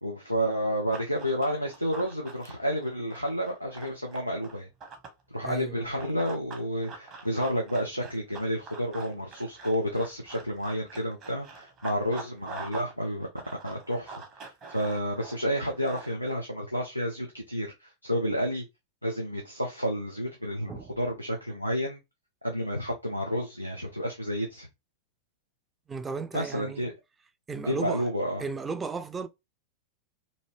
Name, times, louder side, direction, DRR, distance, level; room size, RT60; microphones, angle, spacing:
voice 1, 0.0-4.7 5.3-13.3 13.6-18.6 19.0-22.0 22.4-24.7 26.3-26.9 27.6-28.4, equal, 90° right, 0.5 m, -30 dB
Run, 0.9-5.2 6.0-12.9 13.2-16.3, right 4 dB, 30° right, 0.9 m, -45 dB
voice 2, 5.4-5.9 20.7-21.0 25.9-26.9 27.5-28.1 28.4-29.3, right 4 dB, 15° right, 0.4 m, -35 dB
2.8 x 2.6 x 3.0 m
figure-of-eight pair, 90°, 0 cm